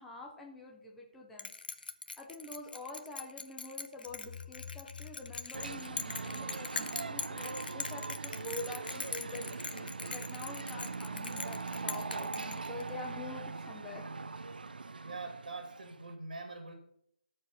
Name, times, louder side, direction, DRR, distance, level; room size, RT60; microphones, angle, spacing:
voice 1, 0.0-1.5 2.2-14.0, left 2 dB, 5° left, -2 dB, 0.7 m, -46 dB
Bell, 1.4-13.0, left 4 dB, 70° left, 0.9 m, -42 dB
sound 1, 4.1-7.0, left 7 dB, 35° left, 0.3 m, -50 dB
sound 2, 5.5-16.1, right 4 dB, 70° right, 0.7 m, -41 dB
voice 2, 15.0-16.7, right 3 dB, 55° right, 5 dB, 2.2 m, -43 dB
14.0 x 5.0 x 5.7 m, 0.72 s
hypercardioid pair, 170°, 5 cm